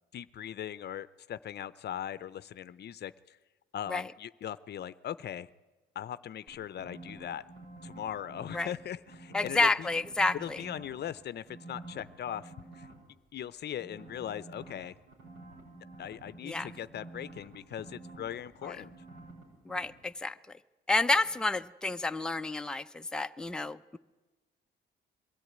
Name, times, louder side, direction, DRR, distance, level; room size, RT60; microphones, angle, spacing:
voice 1, 0.1-3.4 3.7-5.5 6.0-7.4 7.8-9.9 10.3-12.9 13.3-14.9 16.0-18.9, left 10 dB, 55° left, 16 dB, 0.6 m, -39 dB
sound 1, 6.5-8.7 9.1-11.1 11.5-12.9 13.8-19.4 19.7-19.9, right 2 dB, 80° right, 6.8 m, -49 dB
voice 2, 9.3-10.6 16.4-16.7 18.6-18.7 19.7-20.3 20.9-24.0, left 2 dB, 5° left, 8 dB, 0.6 m, -30 dB
22.0 x 13.5 x 9.4 m, 1.2 s
cardioid pair, 90°, 20 cm